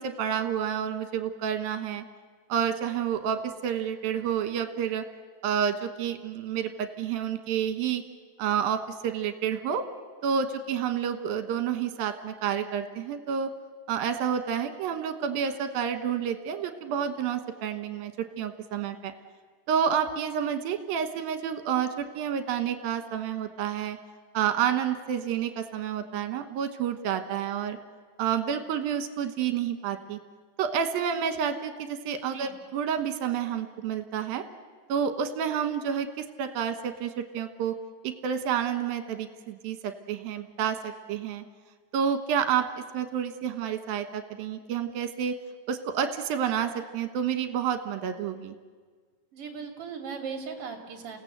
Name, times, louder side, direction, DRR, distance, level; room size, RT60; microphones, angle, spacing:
voice 1, 0.0-2.0 2.5-5.0 5.4-8.0 8.4-9.8 10.2-13.5 13.9-19.1 19.7-24.0 24.3-27.8 28.2-30.2 30.6-34.4 34.9-37.8 38.0-41.4 41.9-42.7 42.9-45.4 45.7-48.6, right 8 dB, 70° right, 9 dB, 2.9 m, -29 dB
voice 2, 49.3-51.2, right 5 dB, 40° right, 4 dB, 3.0 m, -38 dB
28.5 x 17.0 x 8.1 m, 1.5 s
omnidirectional pair, 4.7 m